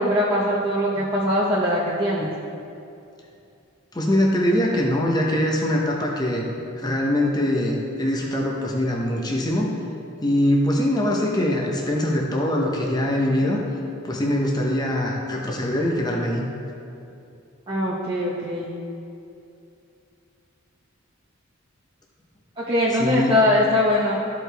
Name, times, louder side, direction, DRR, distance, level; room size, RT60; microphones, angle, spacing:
voice 1, 0.0-2.3 17.7-18.7 22.6-24.2, left 1 dB, 25° right, -7 dB, 0.8 m, -21 dB
voice 2, 3.9-6.4 6.7-9.7 10.2-13.6 14.0-16.5 23.0-23.3, left 1 dB, 20° left, -1 dB, 0.7 m, -22 dB
13.0 x 4.7 x 3.4 m, 2.6 s
head